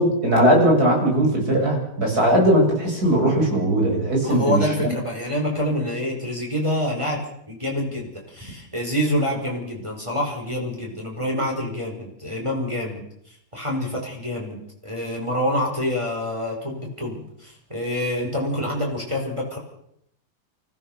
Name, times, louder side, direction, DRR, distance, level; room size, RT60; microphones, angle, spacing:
voice 1, 0.0-4.9, right 1 dB, 60° right, -1 dB, 8.3 m, -19 dB
voice 2, 4.2-13.0 13.5-19.6, left 1 dB, 15° right, -1 dB, 5.6 m, -26 dB
29.0 x 15.5 x 6.8 m, 0.74 s
omnidirectional pair, 1.9 m